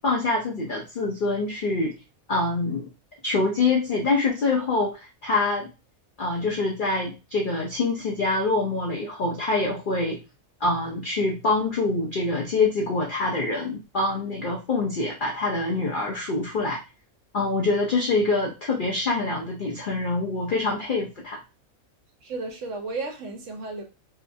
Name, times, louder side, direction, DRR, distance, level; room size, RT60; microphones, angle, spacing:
voice 1, 0.0-1.9 2.3-2.9 3.2-5.7 6.2-10.2 10.6-16.8 17.3-21.4, left 3 dB, 65° left, 0.5 m, -25 dB
voice 2, 22.2-23.8, right 3 dB, 65° right, 0.9 m, -33 dB
2.8 x 2.3 x 2.5 m
omnidirectional pair, 1.5 m